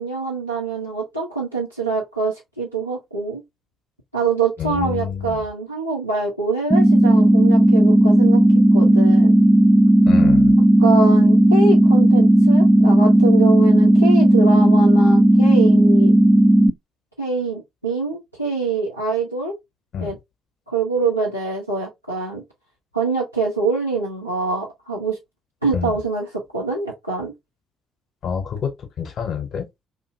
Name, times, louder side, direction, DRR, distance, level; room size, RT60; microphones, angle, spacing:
voice 1, 0.0-3.4 4.1-8.4 8.7-9.3 10.8-16.1 17.2-19.5 20.0-20.2 20.7-22.4 22.9-25.2 25.6-27.3, right 4 dB, 90° right, 0.5 m, -24 dB
voice 2, 4.6-5.4 10.1-10.5 19.9-20.1 25.7-25.9 28.2-28.7 29.0-29.7, left 7 dB, 50° left, 0.8 m, -26 dB
sound 1, 6.7-16.7, right 1 dB, 20° right, 0.4 m, -13 dB
2.5 x 2.5 x 2.5 m
figure-of-eight pair, 45°, 0 cm